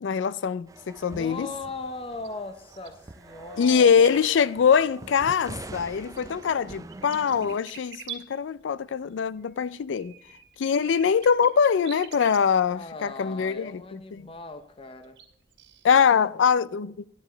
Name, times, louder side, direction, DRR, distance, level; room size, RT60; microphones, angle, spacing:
voice 1, 0.0-1.5 3.6-10.1 10.6-14.3 15.8-17.0, left 6 dB, 80° left, 0.4 m, -23 dB
sound 1, 0.7-7.6, right 2 dB, 20° right, 0.3 m, -45 dB
voice 2, 1.1-4.1 12.7-15.2, left 3 dB, 30° left, 0.7 m, -39 dB
sound 2, 1.9-2.0 2.2-4.4 6.2-8.2 9.4-12.4 13.1-13.2 14.4-14.5 14.9-15.2 15.5-15.8, right 9 dB, 70° right, 2.0 m, -44 dB
10.0 x 9.8 x 4.4 m
head